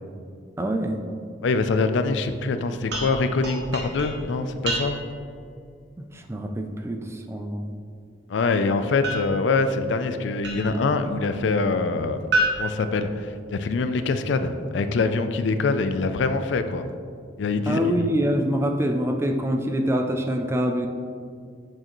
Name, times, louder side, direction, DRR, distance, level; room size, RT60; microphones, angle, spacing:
voice 1, 0.6-1.0 6.0-7.7 17.7-20.9, equal, 15° right, 4 dB, 0.3 m, -25 dB
voice 2, 1.4-5.0 8.3-12.2 12.6-16.8 17.4-18.0, left 3 dB, 70° left, 10 dB, 0.4 m, -24 dB
sound 1, 2.9-5.3 9.0-10.9 12.3-13.8, right 1 dB, 60° right, 1.1 m, -30 dB
6.6 x 6.3 x 3.0 m, 2.2 s
head